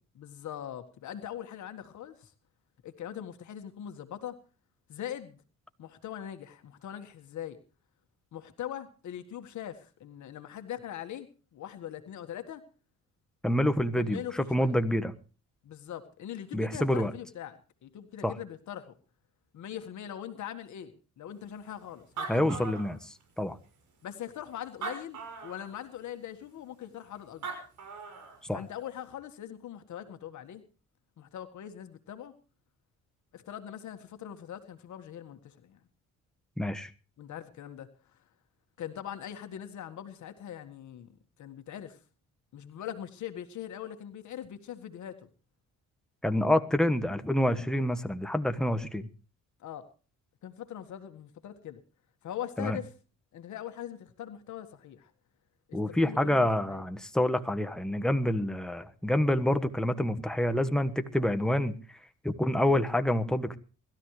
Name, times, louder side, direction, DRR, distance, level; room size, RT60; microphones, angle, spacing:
voice 1, 0.1-2.3 2.8-4.4 4.9-5.4 5.8-7.6 8.3-12.6 13.9-14.7 15.6-18.9 19.5-22.7 24.0-27.5 28.5-30.6 31.2-32.3 33.3-35.8 37.2-37.9 38.8-41.1 41.4-42.0 42.5-45.2 49.6-49.9 50.4-51.8 52.2-52.9 53.3-55.1 55.7-56.8, left 10 dB, 70° left, 1.8 m, -41 dB
voice 2, 13.4-15.1 16.5-17.1 18.2-18.3 22.3-23.0 23.4-23.6 28.5-28.6 36.6-36.9 46.2-49.1 52.6-52.8 55.7-61.7 62.2-63.6, left 1 dB, ahead, 1.4 m, -27 dB
Animal, 21.7-21.8 22.0-23.4 24.1-24.2 24.7-25.7 27.1-27.2 27.4-28.4, right 5 dB, 75° right, 5.9 m, -39 dB
23.5 x 13.5 x 3.2 m
cardioid pair, 90°, 30 cm